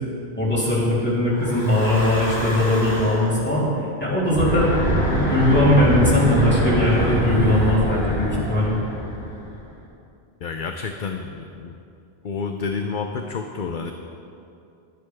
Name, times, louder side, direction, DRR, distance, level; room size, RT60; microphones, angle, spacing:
voice 1, 0.3-4.7 5.3-8.8, left 1 dB, 10° left, -8 dB, 3.5 m, -20 dB
Breathing / Wind, 1.4-3.3 4.2-9.6, right 1 dB, 70° left, 3.9 m, -24 dB
voice 2, 10.4-11.8 12.2-13.9, left 5 dB, 55° left, 5 dB, 0.8 m, -29 dB
22.0 x 9.8 x 3.5 m, 2.6 s
omnidirectional pair, 1.1 m